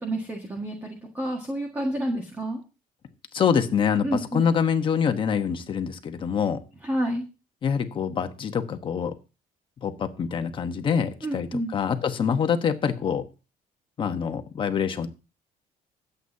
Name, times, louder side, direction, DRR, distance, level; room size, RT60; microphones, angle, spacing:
voice 1, 0.0-2.6 4.0-4.5 6.8-7.2 11.2-11.7, right 1 dB, 10° right, 1 dB, 1.7 m, -29 dB
voice 2, 3.3-6.6 7.6-9.1 9.8-13.2 14.0-15.1, left 7 dB, 35° left, 7 dB, 1.2 m, -25 dB
23.5 x 8.2 x 2.8 m, 0.32 s
cardioid pair, 180°, 16 cm